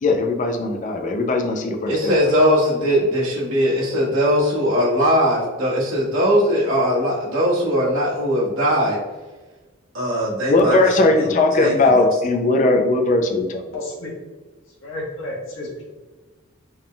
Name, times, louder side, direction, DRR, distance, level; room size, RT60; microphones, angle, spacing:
voice 1, 0.0-2.1 10.5-13.6, left 2 dB, 40° left, 4 dB, 0.4 m, -18 dB
voice 2, 1.9-9.0 9.9-10.8 11.2-11.3 11.6-12.1, equal, 75° right, -6 dB, 1.4 m, -20 dB
voice 3, 13.7-14.1 14.8-15.8, left 1 dB, 75° left, -4 dB, 1.0 m, -31 dB
3.8 x 2.3 x 3.7 m, 1.2 s
head